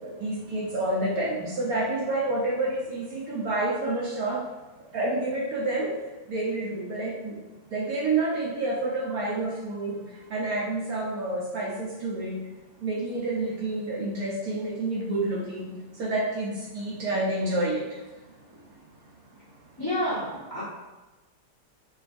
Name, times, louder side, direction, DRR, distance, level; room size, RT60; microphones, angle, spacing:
voice 1, 0.0-1.3 1.6-4.4 4.9-5.9 6.3-7.3 7.7-10.0 10.3-12.4 12.8-15.6 16.0-17.8, right 2 dB, 65° right, -4 dB, 1.0 m, -28 dB
voice 2, 19.8-20.6, equal, 20° left, -10 dB, 0.6 m, -29 dB
4.7 x 2.3 x 2.5 m, 1.1 s
omnidirectional pair, 1.9 m